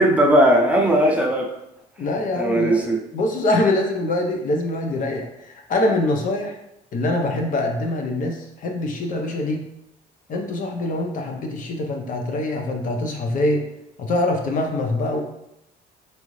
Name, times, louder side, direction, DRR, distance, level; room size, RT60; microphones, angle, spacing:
voice 1, 0.0-1.6 2.4-3.0, right 1 dB, 10° right, -2 dB, 0.7 m, -17 dB
voice 2, 2.0-6.6 6.9-9.6 10.3-13.6 14.0-15.2, left 2 dB, 50° left, 3 dB, 0.8 m, -24 dB
4.6 x 2.7 x 3.2 m, 0.82 s
cardioid pair, 110°, 17 cm